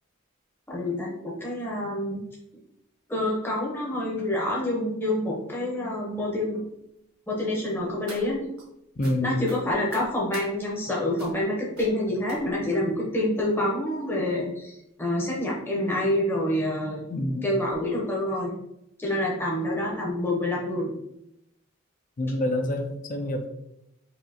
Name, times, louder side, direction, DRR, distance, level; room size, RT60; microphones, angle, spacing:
voice 1, 0.7-2.2 3.1-6.6 7.3-8.4 9.2-17.0 17.4-18.5 19.0-20.9, left 1 dB, 10° left, -5 dB, 0.7 m, -27 dB
sound 1, 7.7-8.7 9.0-9.2 9.4-10.5 11.2-11.4 11.7-11.9 12.3-12.7 13.4-13.5 13.9-14.0 14.3-14.4, right 2 dB, 70° right, 1.3 m, -43 dB
voice 2, 9.0-9.3 17.1-17.5 22.2-23.5, left 1 dB, 40° left, 4 dB, 0.4 m, -27 dB
4.7 x 2.8 x 2.8 m, 0.81 s
head